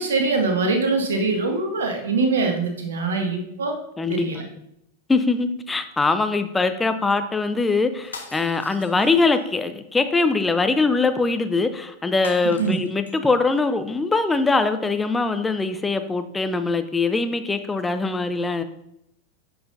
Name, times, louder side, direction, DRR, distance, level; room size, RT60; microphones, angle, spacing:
voice 1, 0.0-3.7 4.1-4.4 12.6-12.8, right 3 dB, 65° right, 4 dB, 1.2 m, -23 dB
voice 2, 5.1-18.6, left 3 dB, 10° left, 9 dB, 0.5 m, -22 dB
sound 1, 8.0-9.5 12.2-13.2, left 4 dB, 70° left, 0.9 m, -40 dB
9.3 x 5.6 x 2.6 m, 0.80 s
figure-of-eight pair, 90°, 0 cm